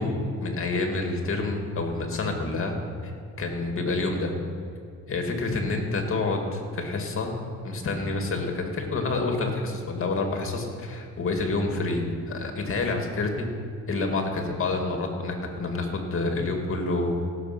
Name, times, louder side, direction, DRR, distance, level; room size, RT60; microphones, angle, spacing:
voice 1, 0.0-2.8 3.0-4.3 5.1-7.3 7.6-13.5 13.9-17.1, left 3 dB, 45° left, 3 dB, 2.3 m, -28 dB
16.5 x 6.7 x 6.1 m, 2.4 s
cardioid pair, 90°, 30 cm